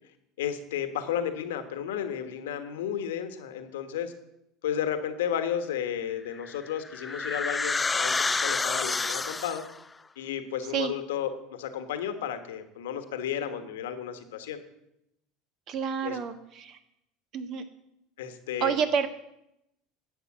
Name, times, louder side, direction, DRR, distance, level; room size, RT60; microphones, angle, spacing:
voice 1, 0.4-4.1 4.6-8.2 8.4-9.6 10.2-14.6 16.0-16.2 18.2-18.8, left 9 dB, 75° left, 8 dB, 1.4 m, -33 dB
sound 1, 6.4-9.8, left 4 dB, 20° left, 0.4 m, -29 dB
voice 2, 15.7-16.8 17.3-17.6 18.6-19.1, right 7 dB, 50° right, 7 dB, 1.6 m, -29 dB
11.5 x 8.0 x 7.4 m, 0.84 s
hypercardioid pair, 75°, 0 cm